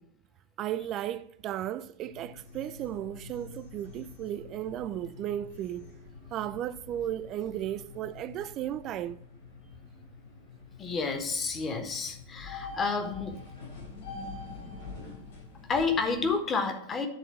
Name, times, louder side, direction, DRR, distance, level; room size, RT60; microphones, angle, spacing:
voice 1, 0.6-5.9 6.3-9.2, right 11 dB, 35° right, 0.4 m, -35 dB
sound 1, 2.0-16.4, left 4 dB, 60° left, 3.9 m, -46 dB
voice 2, 10.8-13.4 15.7-17.1, left 4 dB, 20° left, 1.3 m, -30 dB
10.0 x 3.9 x 5.9 m
figure-of-eight pair, 90°, 0 cm